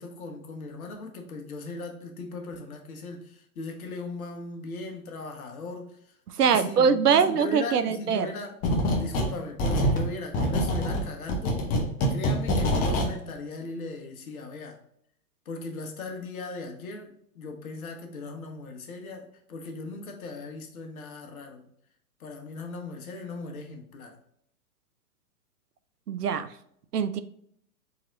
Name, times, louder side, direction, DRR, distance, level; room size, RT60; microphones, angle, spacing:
voice 1, 0.0-6.0 6.4-8.6 9.0-11.7 12.1-14.8 15.4-21.7 22.2-24.2, left 3 dB, 65° left, 1.2 m, -38 dB
voice 2, 6.4-8.3 26.1-26.5 26.9-27.2, right 6 dB, 90° right, 0.6 m, -23 dB
sound 1, 8.6-9.3 9.6-13.1, equal, 20° left, 0.6 m, -25 dB
4.3 x 3.9 x 2.5 m
hypercardioid pair, 125°, 45 cm